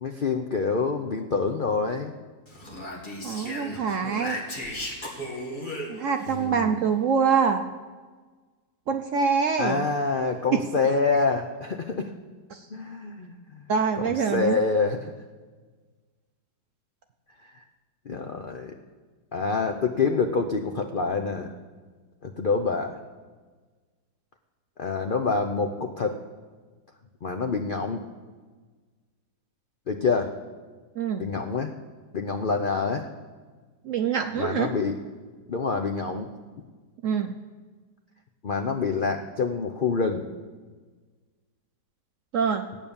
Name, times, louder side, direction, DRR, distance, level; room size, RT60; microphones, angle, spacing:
voice 1, 0.0-2.1 6.3-6.8 9.6-12.1 12.7-13.7 13.9-15.1 17.4-17.6 18.1-18.7 19.3-21.5 22.2-23.0 24.8-26.2 27.2-28.0 29.9-30.4 31.2-31.7 32.1-33.1 34.4-34.9 35.5-36.3 38.4-40.3, left 4 dB, 60° left, 5 dB, 0.5 m, -27 dB
Speech, 2.5-6.4, left 1 dB, 25° left, 2.3 m, -36 dB
voice 2, 3.2-4.4 5.9-7.6 8.9-9.8 10.5-10.6 12.5-12.6 13.7-14.6 31.0-31.3 33.8-34.7 37.0-37.3 42.3-42.7, right 6 dB, 60° right, 6 dB, 0.8 m, -25 dB
15.0 x 9.2 x 7.0 m, 1.4 s
omnidirectional pair, 1.9 m